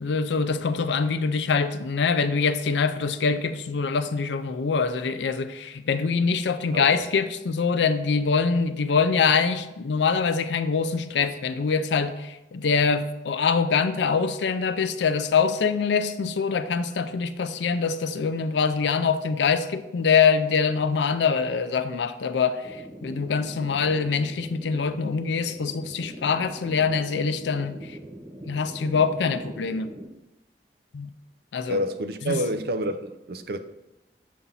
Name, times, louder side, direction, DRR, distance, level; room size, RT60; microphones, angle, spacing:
voice 1, 0.0-22.6 23.0-27.8 28.5-29.9 30.9-31.1 31.5-31.8 32.3-32.4, left 5 dB, 90° left, 0.4 m, -24 dB
voice 2, 6.7-7.0 31.7-33.6, right 1 dB, 60° right, 0.4 m, -29 dB
sound 1, 22.6-30.0, right 1 dB, 20° right, 0.7 m, -42 dB
6.9 x 2.5 x 5.5 m
head